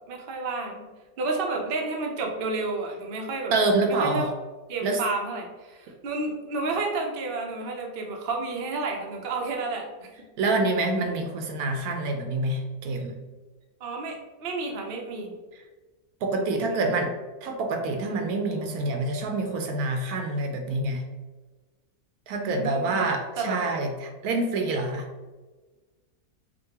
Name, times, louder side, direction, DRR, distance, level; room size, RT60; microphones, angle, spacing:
voice 1, 0.1-0.9 1.2-3.5 3.8-4.3 4.7-10.1 13.8-15.3 16.3-16.9 22.3-23.0 23.4-23.6, right 3 dB, 55° right, 1 dB, 0.6 m, -31 dB
voice 2, 3.5-4.3 4.8-5.0 10.4-13.2 16.2-17.1 17.4-21.0 22.3-25.1, right 2 dB, 75° right, 4 dB, 1.1 m, -26 dB
5.2 x 2.2 x 2.8 m, 1.2 s
omnidirectional pair, 1.6 m